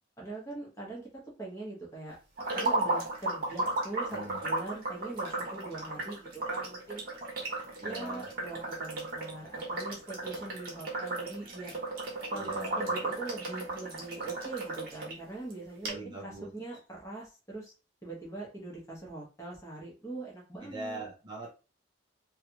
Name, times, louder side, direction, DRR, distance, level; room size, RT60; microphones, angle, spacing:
voice 1, 0.2-2.2 2.5-7.0 7.8-11.8 12.3-17.7 18.0-21.0, right 2 dB, 15° left, -3 dB, 1.0 m, -42 dB
sound 1, 2.4-15.1 15.5-15.6 15.8-15.9, right 2 dB, 45° right, 0.9 m, -35 dB
voice 2, 4.1-4.4 7.8-8.3 12.3-12.9 15.8-16.5 20.6-21.5, right 2 dB, 20° right, -3 dB, 0.6 m, -42 dB
3.2 x 2.4 x 2.9 m, 0.32 s
head